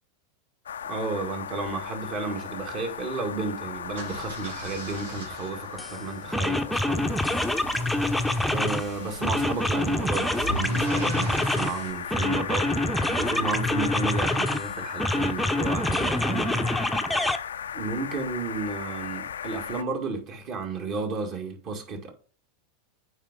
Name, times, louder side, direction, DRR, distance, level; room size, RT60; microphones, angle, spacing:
sound 1, 0.7-19.8, left 8 dB, 80° left, 0.4 m, -37 dB
voice 1, 0.8-7.4 8.5-16.7 17.7-22.1, right 4 dB, 45° right, 2.1 m, -33 dB
sound 2, 3.8-11.9, right 1 dB, 80° right, 2.0 m, -40 dB
sound 3, 5.8-5.9 6.3-8.9 9.2-11.8 12.1-14.6 15.0-17.4, left 1 dB, 5° left, 0.7 m, -26 dB
8.9 x 4.9 x 3.7 m
hypercardioid pair, 90°, 0 cm